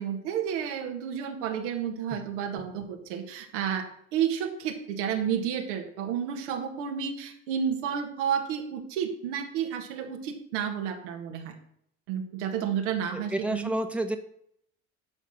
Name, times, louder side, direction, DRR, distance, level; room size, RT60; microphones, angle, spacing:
voice 1, 0.0-3.8 4.1-11.5 12.1-13.7, right 8 dB, 80° right, 3 dB, 1.8 m, -31 dB
voice 2, 13.1-14.2, right 1 dB, 5° right, 6 dB, 1.2 m, -30 dB
12.0 x 4.8 x 6.0 m, 0.70 s
hypercardioid pair, 70°, 35 cm